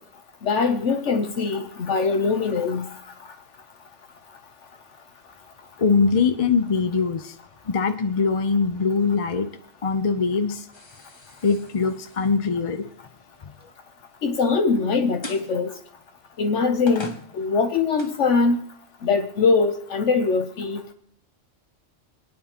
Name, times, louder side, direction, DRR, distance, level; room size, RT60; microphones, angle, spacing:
voice 1, 0.4-2.9 14.2-15.7 16.4-18.6 19.0-20.8, left 4 dB, 70° left, 1.2 m, -22 dB
voice 2, 5.8-7.4 7.7-9.5 9.8-10.7 11.4-12.9, left 4 dB, 40° left, 0.5 m, -22 dB
sound 1, 10.7-13.8 15.2-15.5 16.3-16.4 16.9-18.2, left 2 dB, 25° left, 1.1 m, -41 dB
27.0 x 9.5 x 2.9 m
omnidirectional pair, 1.3 m